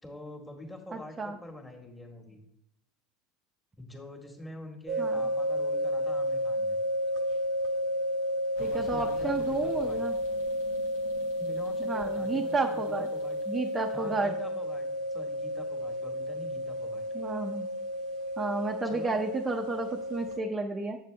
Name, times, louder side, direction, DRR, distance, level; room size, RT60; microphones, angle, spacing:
voice 1, 0.0-2.4 3.8-6.8 8.6-10.0 11.3-13.4 13.9-17.0 18.8-19.2, left 1 dB, 15° left, 2 dB, 1.6 m, -45 dB
voice 2, 0.9-1.4 5.0-5.2 8.6-10.1 11.8-13.1 13.5-14.3 17.1-17.7 18.4-21.0, right 3 dB, 25° right, 3 dB, 0.6 m, -32 dB
sound 1, 4.9-20.4, equal, 70° right, 0.8 m, -32 dB
sound 2, 8.6-14.2, left 3 dB, 85° left, 1.3 m, -52 dB
7.3 x 6.7 x 3.3 m, 0.79 s
hypercardioid pair, 80°, 0 cm